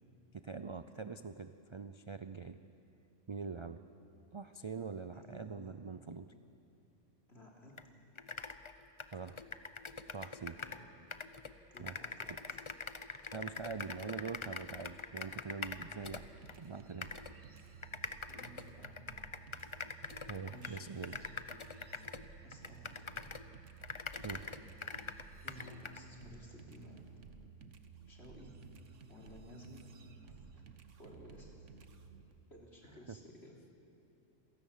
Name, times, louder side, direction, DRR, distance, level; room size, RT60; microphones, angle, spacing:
voice 1, 0.3-2.6 3.3-3.8 4.3-6.3 9.1-9.4 10.1-10.6 11.8-12.0 13.3-16.3 16.6-17.1 20.2-21.3 24.2-24.5, right 5 dB, 50° right, 10 dB, 0.3 m, -44 dB
voice 2, 5.1-5.7 7.3-7.8 10.6-11.0 11.7-12.6 18.3-18.9 20.5-20.8 22.4-23.2 25.4-27.0 28.1-28.5 29.1-29.8 30.2-30.6 31.0-31.6 32.5-33.5, left 1 dB, 55° left, -2 dB, 3.7 m, -55 dB
sound 1, 7.8-7.9 8.2-10.8 11.1-16.6 17.0-17.3 17.8-23.5 23.8-26.0, left 4 dB, 30° left, 0.6 m, -44 dB
sound 2, 16.0-32.3, right 5 dB, 70° right, 1.4 m, -55 dB
27.5 x 17.5 x 7.4 m, 2.8 s
omnidirectional pair, 1.3 m